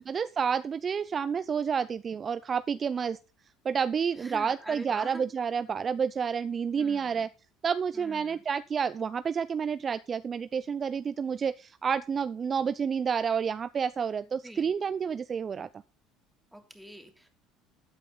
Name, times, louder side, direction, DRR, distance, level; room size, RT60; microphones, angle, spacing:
voice 1, 0.1-3.2 3.6-7.3 7.6-15.7, right 6 dB, 35° right, 15 dB, 0.5 m, -29 dB
voice 2, 4.2-5.2 6.8-7.3 7.9-8.4 14.4-14.7 16.5-17.3, equal, 5° right, 4 dB, 3.1 m, -45 dB
13.0 x 9.1 x 3.9 m, 0.31 s
hypercardioid pair, 70°, 0 cm